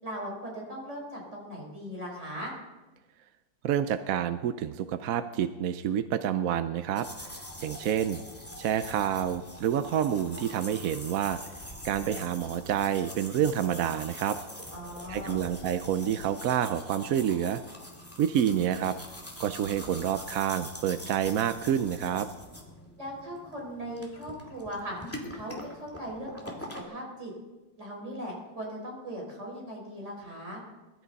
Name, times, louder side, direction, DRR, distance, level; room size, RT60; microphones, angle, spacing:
voice 1, 0.0-2.5 14.7-15.4 23.0-25.0 25.3-27.3 27.8-30.6, equal, 40° right, -1 dB, 5.1 m, -39 dB
voice 2, 3.6-8.2 8.6-11.4 11.8-14.4 15.1-17.6 18.2-19.0 19.4-22.3, right 9 dB, 70° right, 11 dB, 0.8 m, -28 dB
sound 1, 7.0-26.8, left 1 dB, 5° left, 2.4 m, -44 dB
22.0 x 12.5 x 4.1 m, 1.2 s
omnidirectional pair, 2.0 m